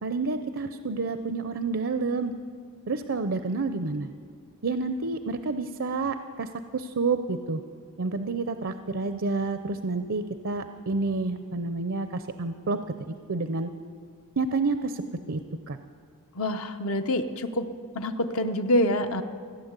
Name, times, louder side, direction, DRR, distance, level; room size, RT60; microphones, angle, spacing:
voice 1, 0.0-2.3 2.9-4.1 4.6-7.6 8.0-13.7 14.4-15.4 15.7-15.8, right 3 dB, 60° right, 9 dB, 0.6 m, -29 dB
voice 2, 16.4-17.7 17.9-19.2, left 1 dB, 65° left, 7 dB, 0.9 m, -26 dB
15.5 x 10.5 x 8.1 m, 2.1 s
head